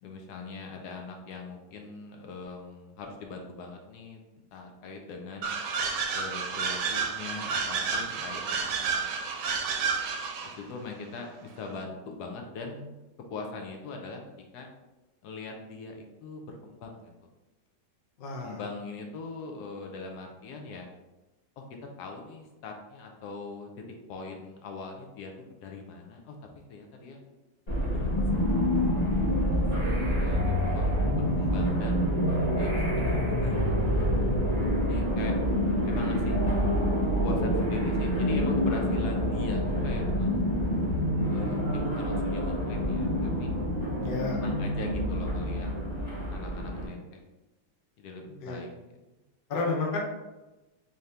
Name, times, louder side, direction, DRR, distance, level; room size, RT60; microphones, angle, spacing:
voice 1, 0.0-5.5 6.1-9.1 10.4-13.0 13.3-14.2 14.5-14.7 15.2-17.1 18.4-20.9 21.6-21.7 22.0-26.4 26.7-27.2 27.9-28.8 29.4-32.0 32.5-33.9 34.6-35.3 35.8-36.4 37.2-40.5 41.3-43.5 44.3-45.7 46.3-47.2 48.0-48.7, left 3 dB, 75° left, 2 dB, 1.1 m, -41 dB
sound 1, 5.4-10.6, right 5 dB, 80° right, 1.2 m, -30 dB
voice 2, 18.2-18.6 44.0-44.4 48.4-48.6 49.5-50.0, left 3 dB, 55° left, -1 dB, 0.6 m, -31 dB
sound 2, 27.7-46.9, equal, 35° left, 1.4 m, -27 dB
3.6 x 2.8 x 3.2 m, 1.1 s
omnidirectional pair, 1.8 m